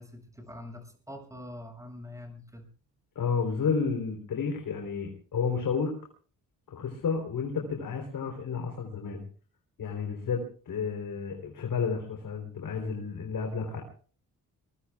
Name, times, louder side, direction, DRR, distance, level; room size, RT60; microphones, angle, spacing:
voice 1, 0.0-2.7, left 1 dB, 10° right, 4 dB, 7.0 m, -44 dB
voice 2, 3.2-5.9 6.7-9.2 9.8-13.8, left 5 dB, 70° left, 2 dB, 3.8 m, -31 dB
24.5 x 22.5 x 2.4 m, 0.43 s
cardioid pair, 95°, 35 cm